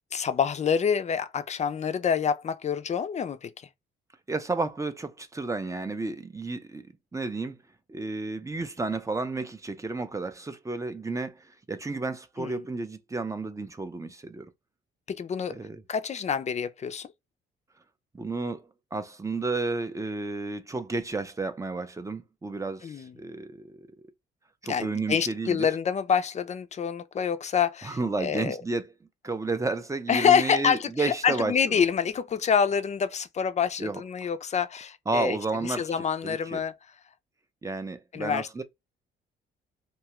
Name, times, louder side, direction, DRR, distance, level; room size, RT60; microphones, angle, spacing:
voice 1, 0.1-3.5 12.4-12.6 15.1-15.6 15.9-17.1 22.8-23.1 24.7-28.6 30.1-35.4 35.6-36.8 38.1-38.6, left 7 dB, 35° left, 0.5 m, -27 dB
voice 2, 4.3-6.9 7.1-7.6 7.9-14.5 15.5-15.8 18.1-23.9 24.6-25.7 27.8-28.9 29.2-31.8 33.8-34.0 35.1-36.6 37.6-38.6, right 3 dB, 15° right, 0.5 m, -32 dB
2.8 x 2.3 x 2.8 m
cardioid pair, 90°, 20 cm